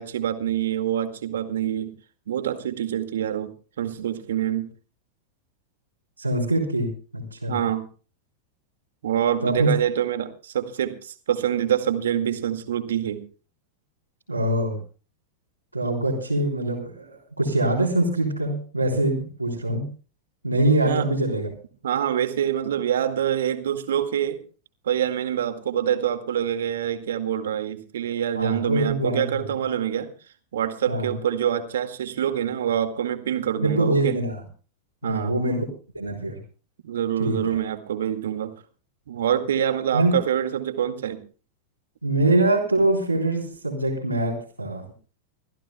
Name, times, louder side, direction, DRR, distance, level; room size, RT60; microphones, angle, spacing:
voice 1, 0.0-1.9 2.3-3.5 3.8-4.7 7.5-7.8 9.0-13.2 20.9-21.1 21.8-24.4 24.8-30.1 30.5-34.2 35.0-35.3 36.8-38.5 39.1-41.2, right 10 dB, 60° right, 8 dB, 2.1 m, -25 dB
voice 2, 6.2-7.6 9.4-9.8 14.3-14.8 15.7-19.9 20.4-21.5 28.4-29.5 30.9-31.1 33.6-34.4 35.0-35.7 35.9-36.4 37.2-37.6 39.9-40.2 42.0-44.9, right 1 dB, 85° right, -3 dB, 3.9 m, -24 dB
26.5 x 15.0 x 2.3 m, 0.37 s
figure-of-eight pair, 90°, 0 cm